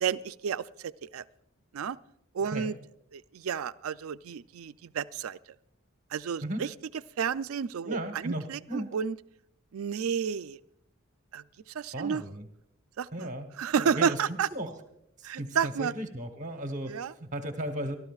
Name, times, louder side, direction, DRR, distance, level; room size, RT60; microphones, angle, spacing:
voice 1, 0.0-1.2 1.7-2.0 2.3-2.7 3.1-5.4 6.1-6.7 7.2-9.1 9.7-10.6 11.3-11.4 11.7-12.2 13.0-13.3 13.6-14.5 15.2-15.9 16.9-17.1, right 7 dB, 85° right, 14 dB, 0.4 m, -31 dB
voice 2, 7.8-8.9 11.9-12.5 13.1-13.5 13.8-14.7 15.2-18.0, right 1 dB, 35° right, 7 dB, 1.0 m, -36 dB
28.0 x 12.5 x 2.4 m, 0.73 s
head